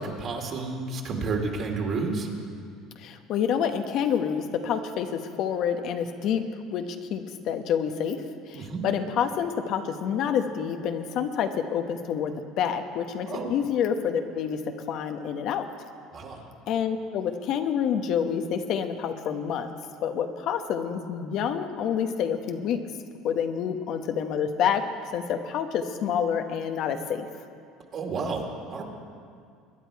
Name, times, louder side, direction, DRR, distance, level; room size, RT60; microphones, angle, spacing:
voice 1, 0.0-2.3 8.5-8.8 13.3-13.5 16.1-16.4 27.9-28.8, right 3 dB, 45° right, 2 dB, 2.4 m, -31 dB
voice 2, 3.0-6.4 6.7-15.9 16.7-19.7 20.0-22.8 23.2-24.8 25.1-27.3, left 8 dB, 60° left, 7 dB, 1.0 m, -28 dB
22.0 x 10.0 x 4.7 m, 2.2 s
supercardioid pair, 100°, 0 cm